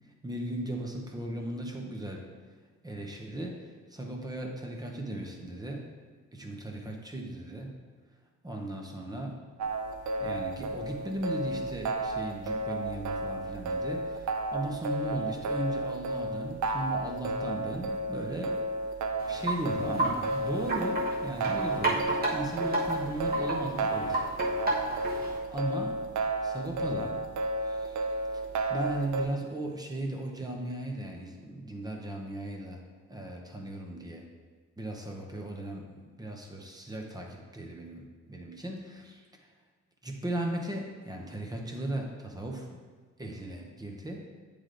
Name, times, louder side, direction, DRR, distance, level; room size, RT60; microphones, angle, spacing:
voice 1, 0.2-2.3 2.8-3.6 3.9-5.8 6.3-7.7 8.4-9.4 10.2-18.6 19.3-24.2 25.0-26.0 26.4-27.2 27.6-28.4 28.7-32.8 33.1-34.3 34.8-39.2 40.0-42.8 43.2-44.2, right 1 dB, 15° right, 1 dB, 0.7 m, -37 dB
sound 1, 9.6-29.2, right 2 dB, 80° right, 0.6 m, -32 dB
Wind chime, 19.2-25.4, right 2 dB, 30° right, 1.2 m, -32 dB
9.0 x 3.3 x 3.8 m, 1.5 s
wide cardioid pair, 155°, 29 cm